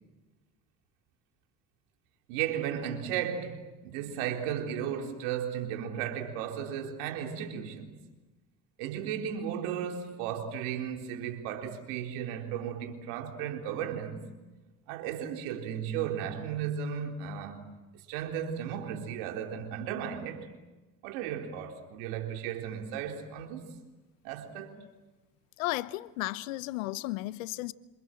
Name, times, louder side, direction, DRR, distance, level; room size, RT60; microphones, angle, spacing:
voice 1, 2.3-8.0 8.8-14.2 14.9-17.7 18.1-20.5 21.0-23.7 24.2-24.8, right 9 dB, 75° right, 3.9 m, -35 dB
voice 2, 25.6-27.7, left 18 dB, 85° left, 0.9 m, -34 dB
27.0 x 27.0 x 7.7 m
hypercardioid pair, 70°, 39 cm